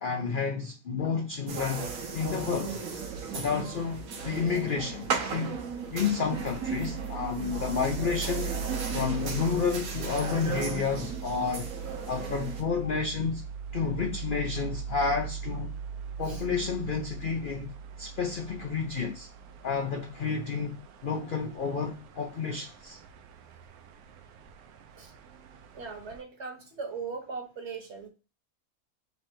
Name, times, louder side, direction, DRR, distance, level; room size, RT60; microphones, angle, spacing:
voice 1, 0.0-2.8 3.3-5.6 5.9-8.5 8.9-11.7 12.1-13.4 13.7-15.7 16.2-17.7 18.0-19.3 19.6-23.0, left 5 dB, 60° left, 0.5 m, -30 dB
sound 1, 1.5-12.6, right 5 dB, 70° right, 1.2 m, -36 dB
sound 2, 6.3-26.2, right 6 dB, 85° right, 1.1 m, -40 dB
voice 2, 25.7-28.1, right 5 dB, 55° right, 1.3 m, -39 dB
3.3 x 3.2 x 4.4 m
omnidirectional pair, 1.5 m